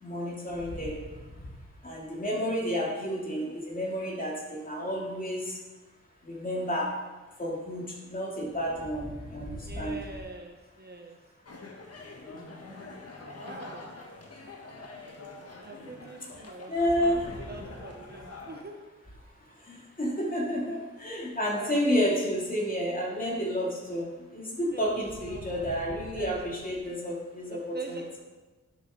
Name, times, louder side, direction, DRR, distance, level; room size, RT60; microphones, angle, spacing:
voice 1, 0.0-1.0 1.8-5.6 6.2-6.9 7.4-10.0 12.3-12.8 16.7-17.3 19.7-28.0, equal, 30° left, -3 dB, 2.7 m, -31 dB
voice 2, 9.6-11.2 13.3-13.9 15.6-16.7 17.0-18.8 21.5-21.9 24.7-24.9 25.3-25.7 26.1-26.4 27.5-28.0, right 3 dB, 35° right, 1 dB, 1.0 m, -43 dB
sound 1, 11.5-18.6, left 3 dB, 55° left, 1.4 m, -45 dB
10.0 x 6.5 x 3.8 m, 1.2 s
cardioid pair, 70°, 29 cm